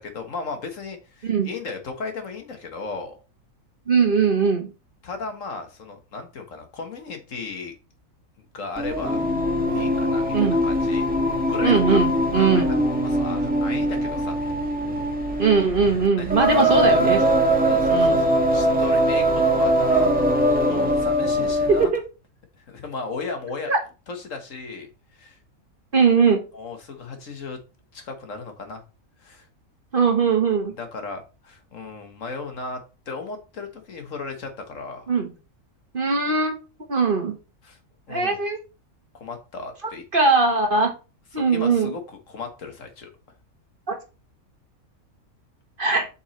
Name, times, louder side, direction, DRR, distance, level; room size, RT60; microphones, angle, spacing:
voice 1, 0.0-3.2 5.0-7.7 8.5-9.2 9.7-11.1 11.4-12.1 12.4-14.4 16.2-16.7 17.6-20.2 20.6-21.9 22.6-23.7 24.1-25.4 26.5-27.6 27.9-28.8 29.2-29.5 30.8-32.8 33.1-35.1 37.6-37.8 38.1-38.4 39.1-40.0 41.3-43.1, left 4 dB, 65° left, 5 dB, 1.7 m, -35 dB
voice 2, 3.9-4.7 10.3-10.6 11.6-12.7 15.4-17.2 17.9-18.2 21.7-22.0 23.7-23.8 25.9-26.4 29.9-30.8 35.1-35.3 35.9-36.6 36.9-37.3 38.1-38.6 39.8-40.9 41.3-41.9 43.9-44.0 45.8-46.1, right 5 dB, 40° right, 4 dB, 1.3 m, -20 dB
Singing, 8.8-22.0, equal, 5° right, 1.5 m, -21 dB
8.1 x 5.7 x 3.1 m, 0.30 s
omnidirectional pair, 1.5 m